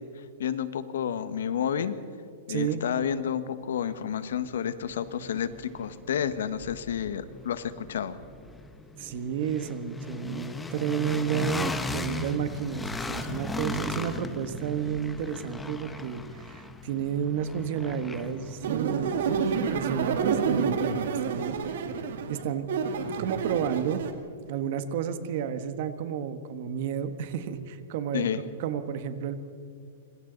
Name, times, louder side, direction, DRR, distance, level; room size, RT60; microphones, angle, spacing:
voice 1, 0.2-2.0 2.5-8.2 28.1-28.4, left 8 dB, 80° left, 12 dB, 1.4 m, -30 dB
voice 2, 2.5-2.8 9.0-21.5 22.3-22.7 23.2-24.0 24.5-28.3 28.6-29.4, right 8 dB, 45° right, 10 dB, 1.4 m, -31 dB
sound 1, 3.9-4.0 4.5-20.4, left 3 dB, 5° left, 0.9 m, -38 dB
sound 2, 18.6-24.1, right 6 dB, 65° right, 2.0 m, -29 dB
26.5 x 24.5 x 4.0 m, 2.4 s
supercardioid pair, 165°, 0 cm